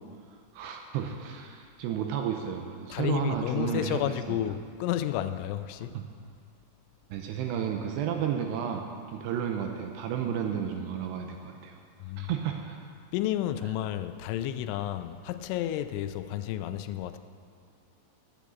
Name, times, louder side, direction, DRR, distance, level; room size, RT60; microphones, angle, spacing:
voice 1, 0.5-4.4 5.9-6.0 7.1-11.8 12.2-12.9, right 8 dB, 85° right, 3 dB, 2.6 m, -32 dB
voice 2, 2.9-6.0 12.0-12.3 13.1-17.2, left 12 dB, 85° left, 11 dB, 3.0 m, -31 dB
10.0 x 8.7 x 8.1 m, 2.2 s
omnidirectional pair, 5.4 m